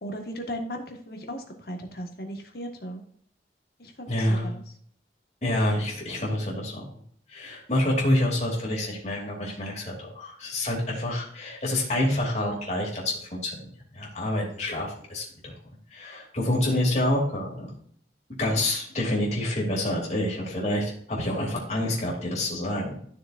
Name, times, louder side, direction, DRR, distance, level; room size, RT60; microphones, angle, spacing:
voice 1, 0.0-3.0 3.8-4.6, equal, 55° left, 3 dB, 1.6 m, -36 dB
voice 2, 4.1-4.5 5.4-6.8 7.3-13.7 13.9-15.5 15.9-17.7 18.4-23.0, left 1 dB, 40° left, -3 dB, 2.8 m, -27 dB
12.0 x 6.5 x 2.6 m, 0.63 s
head